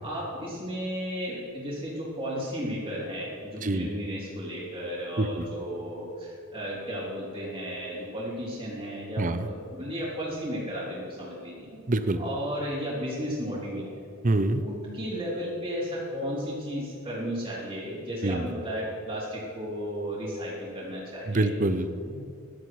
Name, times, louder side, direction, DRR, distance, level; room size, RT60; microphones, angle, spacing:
voice 1, 0.0-11.8 12.2-14.0 14.6-21.5 22.0-22.2, equal, 20° right, -12 dB, 3.9 m, -34 dB
voice 2, 11.9-12.2 14.2-14.6 18.2-18.5 21.3-21.9, right 2 dB, 35° right, 10 dB, 0.7 m, -25 dB
15.5 x 12.0 x 4.8 m, 2.5 s
head